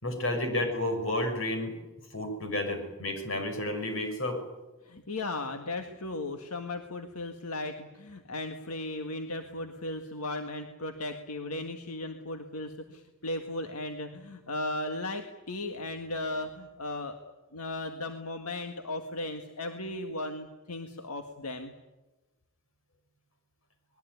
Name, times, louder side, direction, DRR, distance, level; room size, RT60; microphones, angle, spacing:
voice 1, 0.0-1.7 2.1-4.4, left 1 dB, 65° left, 5 dB, 6.2 m, -31 dB
voice 2, 4.8-17.2 17.5-21.7, left 2 dB, 90° left, 5 dB, 1.9 m, -36 dB
24.5 x 21.0 x 9.5 m, 1.1 s
head